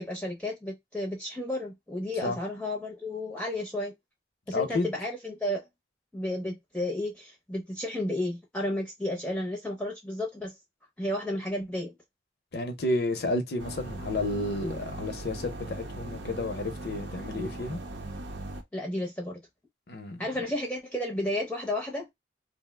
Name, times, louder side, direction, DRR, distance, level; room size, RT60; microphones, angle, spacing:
voice 1, 0.0-3.9 4.5-5.6 6.1-10.5 11.0-11.9 18.7-19.4 20.2-22.1, left 1 dB, 5° left, 0.6 m, -32 dB
voice 2, 4.5-4.9 12.5-17.8 19.9-20.5, left 2 dB, 60° left, 0.7 m, -31 dB
sound 1, 13.6-18.6, right 2 dB, 85° right, 0.6 m, -39 dB
2.7 x 2.0 x 3.3 m
head